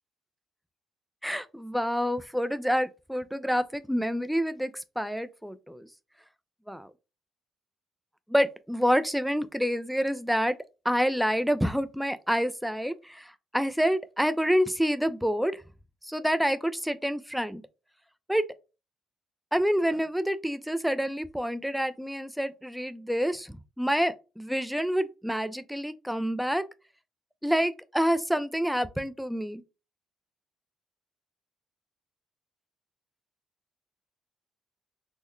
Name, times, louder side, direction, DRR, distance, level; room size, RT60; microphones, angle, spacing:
voice 1, 1.2-5.9 6.7-6.9 8.3-10.5 10.8-15.6 16.0-17.6 18.3-18.5 19.5-26.7 27.4-29.6, equal, ahead, 0.4 m, -28 dB
3.8 x 2.0 x 3.1 m
cardioid pair, 90°, 0 cm